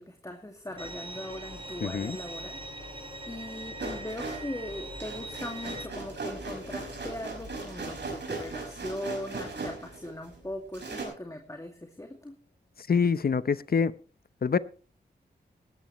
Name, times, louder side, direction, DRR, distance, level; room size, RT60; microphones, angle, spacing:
voice 1, 0.0-2.6 3.3-12.3, left 1 dB, 15° left, 2.2 m, -40 dB
sound 1, 0.6-12.4, left 4 dB, 85° left, 2.0 m, -50 dB
Bowed string instrument, 0.8-5.9, right 2 dB, 30° right, 4.2 m, -42 dB
voice 2, 1.8-2.2 12.9-13.9 14.4-14.6, left 6 dB, 55° left, 0.8 m, -25 dB
sound 2, 3.8-10.4 10.7-11.1, right 3 dB, 75° right, 5.6 m, -38 dB
18.0 x 12.5 x 3.1 m
cardioid pair, 45°, 18 cm